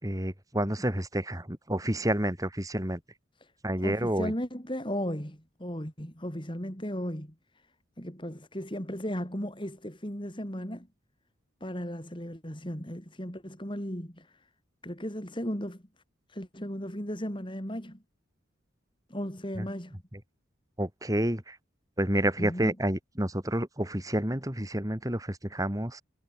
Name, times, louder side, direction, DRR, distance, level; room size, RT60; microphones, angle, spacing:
voice 1, 0.0-3.0 3.6-4.3 19.6-19.7 20.8-21.6 22.0-26.0, right 1 dB, 20° right, 2.9 m, -29 dB
voice 2, 3.8-7.3 8.0-10.9 11.6-14.3 14.8-15.8 16.3-18.0 19.1-20.0 22.4-22.7, equal, 25° left, 4.9 m, -36 dB
head